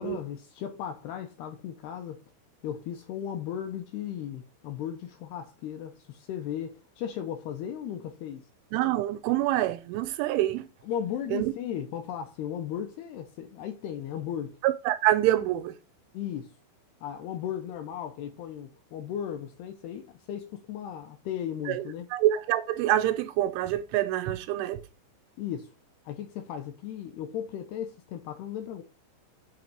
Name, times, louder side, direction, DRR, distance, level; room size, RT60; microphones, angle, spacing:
voice 1, 0.0-2.2 2.6-8.5 10.8-14.6 16.1-16.5 17.0-22.1 25.4-25.7 26.1-28.8, left 9 dB, 75° left, 2.5 m, -36 dB
voice 2, 8.7-10.7 11.3-11.5 14.6-15.7 21.7-21.8 22.1-24.8, right 13 dB, 85° right, 3.2 m, -26 dB
8.8 x 4.2 x 6.4 m
omnidirectional pair, 5.5 m